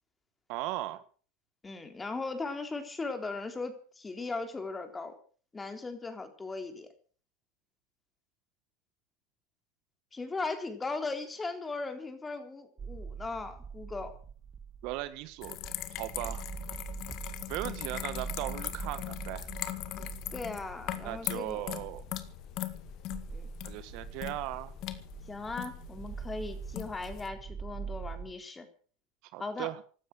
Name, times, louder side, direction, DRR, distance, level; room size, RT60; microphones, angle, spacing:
voice 1, 0.5-1.0 14.8-15.6 16.0-16.4 17.5-19.5 21.0-22.0 23.6-24.7 29.3-29.8, right 16 dB, 55° right, 13 dB, 1.6 m, -37 dB
voice 2, 1.6-5.1 5.5-6.9 10.1-14.2 20.3-21.6 23.3-23.5 25.3-28.7 29.4-29.7, left 3 dB, 15° left, 7 dB, 3.6 m, -38 dB
sound 1, 12.8-28.3, right 6 dB, 25° right, 1.5 m, -44 dB
sound 2, 15.4-27.3, left 14 dB, 50° left, 2.0 m, -40 dB
16.5 x 12.5 x 6.4 m, 0.42 s
supercardioid pair, 120°, 0 cm